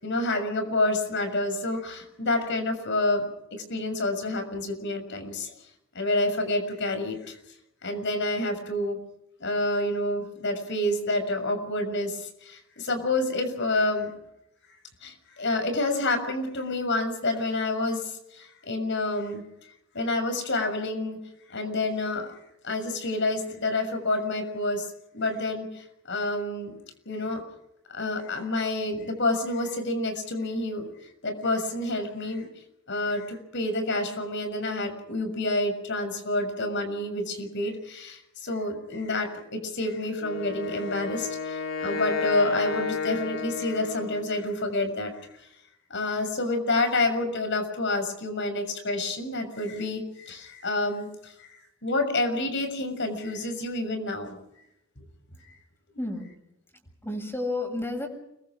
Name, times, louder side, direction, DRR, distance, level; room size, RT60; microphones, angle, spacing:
voice 1, 0.0-3.2 3.5-5.5 5.9-7.4 7.8-9.0 9.4-14.1 15.0-19.4 19.9-21.2 21.5-22.3 22.6-24.9 25.1-26.7 27.0-27.4 27.9-30.9 31.2-32.5 32.9-45.3 45.9-54.4, left 2 dB, 60° left, 8 dB, 6.8 m, -28 dB
Wind instrument woodwind instrument, 40.2-44.5, left 5 dB, 80° left, 2.9 m, -32 dB
voice 2, 56.0-56.3 57.0-58.1, left 2 dB, 10° left, 4 dB, 7.2 m, -31 dB
29.5 x 23.0 x 5.1 m, 0.81 s
head